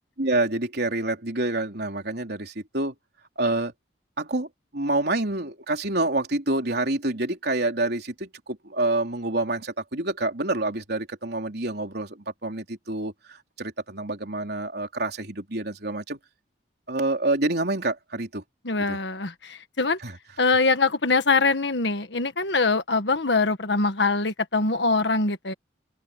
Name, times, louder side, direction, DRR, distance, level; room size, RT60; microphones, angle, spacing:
voice 1, 0.2-2.9 3.4-3.7 4.2-16.2 16.9-18.4 18.8-19.0 20.0-20.2, right 2 dB, 60° right, 3.8 m, -27 dB
voice 2, 18.6-20.0 20.4-25.5, left 3 dB, 70° left, 1.6 m, -23 dB
open air
head